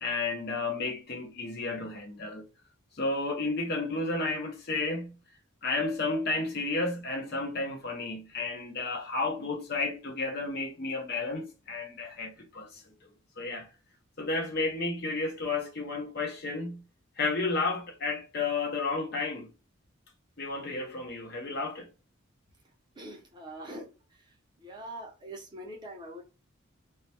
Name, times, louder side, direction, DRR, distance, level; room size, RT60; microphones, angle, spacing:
voice 1, 0.0-2.4 2.9-5.2 5.6-12.8 13.4-13.7 14.2-16.8 17.2-19.5 20.4-21.9, left 3 dB, 45° left, 0.6 m, -32 dB
voice 2, 23.0-23.9 24.6-26.2, right 1 dB, 20° right, 0.5 m, -43 dB
2.2 x 2.1 x 2.7 m
head